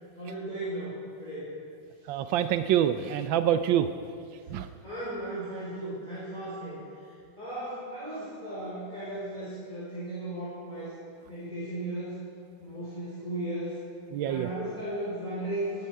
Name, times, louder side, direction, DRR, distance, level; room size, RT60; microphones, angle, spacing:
voice 1, 0.2-1.5 4.8-6.8 7.4-10.9 11.3-12.1 12.6-13.7 14.2-15.8, right 1 dB, 20° left, -9 dB, 4.1 m, -36 dB
voice 2, 2.1-3.9 4.5-4.7 14.1-14.5, right 10 dB, 80° right, 10 dB, 1.3 m, -26 dB
17.0 x 14.0 x 4.6 m, 2.3 s
omnidirectional pair, 2.1 m